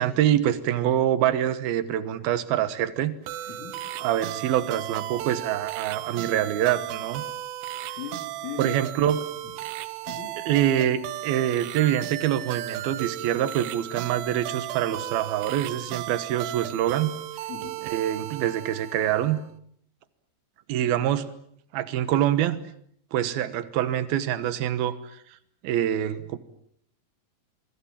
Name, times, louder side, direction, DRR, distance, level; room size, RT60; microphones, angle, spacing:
voice 1, 0.0-3.1 4.0-7.2 7.9-8.0 8.6-9.2 10.5-17.1 17.8-19.4 20.7-21.3 21.7-22.6 23.1-25.2 25.6-26.4, right 11 dB, 70° right, 13 dB, 2.4 m, -25 dB
sound 1, 3.3-19.4, right 14 dB, 85° right, 4.0 m, -35 dB
voice 2, 3.5-3.8 8.0-9.1 10.1-10.3 17.5-17.8 20.8-20.9, left 7 dB, 75° left, 3 dB, 5.2 m, -39 dB
27.0 x 24.5 x 7.5 m, 0.66 s
omnidirectional pair, 6.0 m